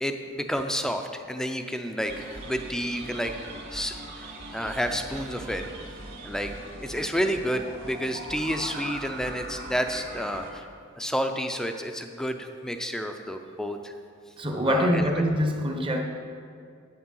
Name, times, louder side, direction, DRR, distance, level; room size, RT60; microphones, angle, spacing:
voice 1, 0.0-3.3 3.7-5.6 6.2-6.5 6.8-10.6 11.0-13.9 14.7-15.1, equal, 5° left, 5 dB, 0.5 m, -30 dB
sound 1, 2.0-10.5, right 1 dB, 55° right, 2.2 m, -40 dB
voice 2, 14.4-16.0, equal, 25° right, 4 dB, 0.9 m, -24 dB
8.8 x 8.2 x 5.4 m, 2.3 s
head